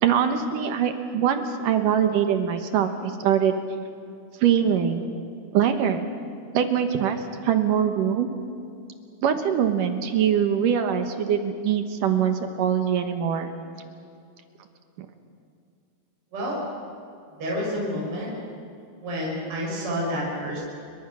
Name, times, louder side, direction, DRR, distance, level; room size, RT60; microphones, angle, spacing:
voice 1, 0.0-3.6 4.4-5.1 5.5-6.1 6.5-8.3 9.2-13.5, right 8 dB, 65° right, 7 dB, 2.3 m, -23 dB
voice 2, 17.4-18.3 19.0-20.6, equal, 30° right, -4 dB, 6.6 m, -29 dB
29.5 x 23.5 x 6.3 m, 2.4 s
omnidirectional pair, 5.0 m